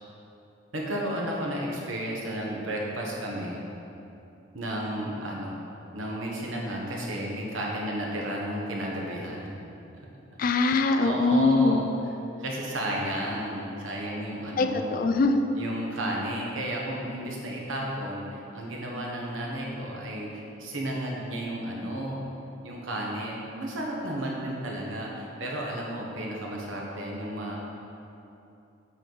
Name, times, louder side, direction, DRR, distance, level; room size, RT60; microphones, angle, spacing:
voice 1, 0.7-3.6 4.5-5.6 5.9-9.4 10.3-10.4 10.9-11.9 12.4-14.9 15.5-22.2 22.6-27.6, right 1 dB, 85° right, -2 dB, 1.2 m, -33 dB
voice 2, 10.4-11.8 14.6-15.4, left 3 dB, 45° left, 6 dB, 0.4 m, -22 dB
7.8 x 4.6 x 3.9 m, 2.8 s
head